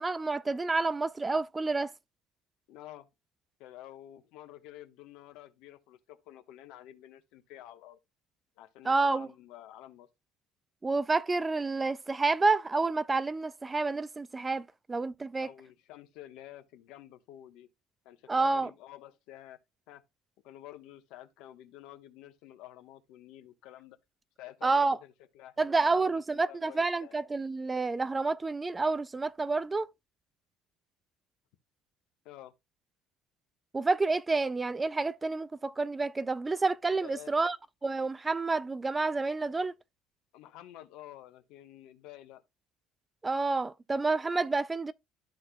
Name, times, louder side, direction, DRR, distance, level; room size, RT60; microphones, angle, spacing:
voice 1, 0.0-1.9 8.9-9.3 10.8-15.5 18.3-18.7 24.6-25.0 25.6-29.9 33.7-37.6 37.8-39.7 43.2-44.9, right 3 dB, 15° right, 0.3 m, -29 dB
voice 2, 2.7-3.1 3.6-8.0 8.6-10.1 15.4-17.7 18.0-19.6 19.9-20.0 20.4-24.0 24.4-27.1 32.2-32.5 37.0-37.4 40.3-42.4, left 13 dB, 75° left, 1.1 m, -50 dB
13.0 x 4.3 x 2.2 m
cardioid pair, 155°, 0 cm